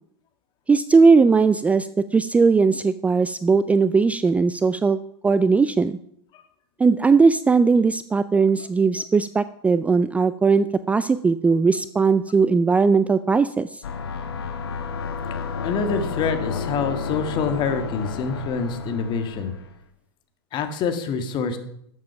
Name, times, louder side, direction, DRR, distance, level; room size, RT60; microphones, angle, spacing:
voice 1, 0.7-5.0 5.2-6.0 6.8-13.8, right 4 dB, 10° right, 14 dB, 0.3 m, -19 dB
sound 1, 13.8-19.8, left 5 dB, 75° left, 1.4 m, -31 dB
voice 2, 15.6-19.5 20.5-21.6, left 5 dB, 35° left, 8 dB, 1.8 m, -26 dB
12.5 x 7.8 x 5.8 m, 0.71 s
hypercardioid pair, 100°, 13 cm